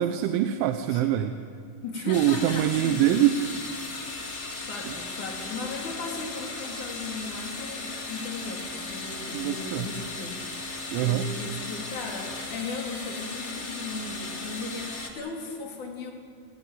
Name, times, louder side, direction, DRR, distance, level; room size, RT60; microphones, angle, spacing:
voice 1, 0.0-1.4 2.0-3.4 4.9-5.0 9.3-9.9 10.9-11.3, right 12 dB, 85° right, 8 dB, 3.2 m, -24 dB
voice 2, 1.8-3.0 4.7-10.4 10.7-16.1, left 4 dB, 45° left, 0 dB, 4.2 m, -37 dB
sound 1, 2.1-15.1, left 3 dB, 70° left, 0.6 m, -36 dB
29.0 x 14.0 x 9.2 m, 2.3 s
omnidirectional pair, 5.3 m